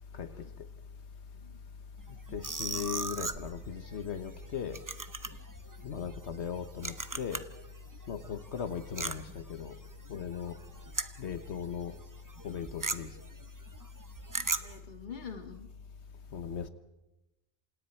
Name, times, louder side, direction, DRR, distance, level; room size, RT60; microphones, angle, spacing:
voice 1, 0.1-0.5 1.4-1.6 5.7-5.9 10.6-10.8 14.6-15.7, left 6 dB, 45° left, 1.9 m, -47 dB
sound 1, 2.0-7.7 7.9-11.6 11.9-12.0 12.3-14.8, right 3 dB, 20° right, 0.7 m, -38 dB
voice 2, 2.3-4.8 5.8-7.5 8.1-9.8 10.1-10.6 11.2-11.9 12.4-13.1 16.3-16.7, left 7 dB, 85° left, 1.4 m, -38 dB
27.5 x 26.5 x 4.4 m
omnidirectional pair, 1.1 m